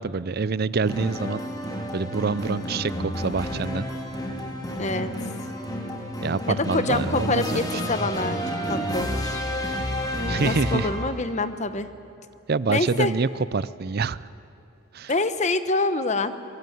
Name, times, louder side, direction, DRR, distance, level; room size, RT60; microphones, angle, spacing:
voice 1, 0.0-1.4 1.9-3.9 6.2-7.7 10.3-10.9 12.5-14.3 14.9-15.1, right 4 dB, 50° right, 18 dB, 0.5 m, -26 dB
sound 1, 0.8-11.3, equal, 20° left, 2.5 m, -30 dB
voice 2, 4.8-5.1 6.5-8.4 8.7-9.4 10.4-11.9 12.7-13.1 15.1-16.4, left 3 dB, 35° left, 11 dB, 1.1 m, -26 dB
22.5 x 22.5 x 9.3 m, 2.8 s
head